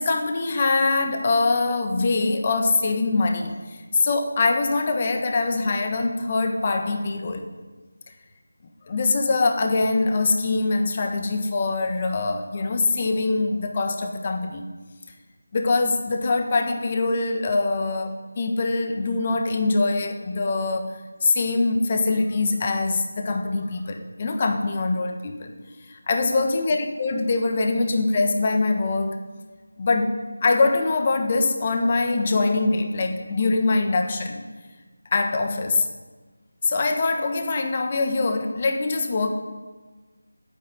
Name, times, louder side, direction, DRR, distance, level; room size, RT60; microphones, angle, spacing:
voice 1, 0.0-7.5 8.9-14.6 15.5-25.6 25.9-29.2 29.8-34.4 35.1-35.9 36.6-39.3, left 3 dB, 30° left, 5 dB, 1.4 m, -23 dB
12.5 x 9.5 x 9.9 m, 1.3 s
figure-of-eight pair, 165°, 0 cm